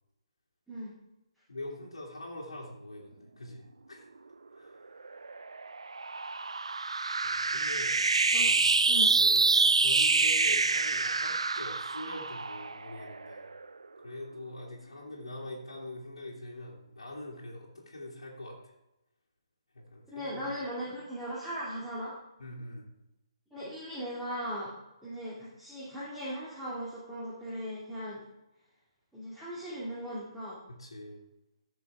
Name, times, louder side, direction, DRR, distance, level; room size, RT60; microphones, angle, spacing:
voice 1, 1.5-4.1 4.6-4.8 7.2-8.1 8.4-8.7 9.2-13.4 14.0-18.7 19.7-20.5 22.4-22.9 30.7-31.2, left 1 dB, 75° left, -5 dB, 2.3 m, -44 dB
sound 1, 5.0-13.7, right 3 dB, 80° right, 0.4 m, -27 dB
voice 2, 20.1-22.1 23.5-24.7 25.0-28.2 29.1-30.6, equal, ahead, -9 dB, 2.5 m, -38 dB
15.0 x 6.3 x 3.5 m, 0.95 s
figure-of-eight pair, 135°, 3 cm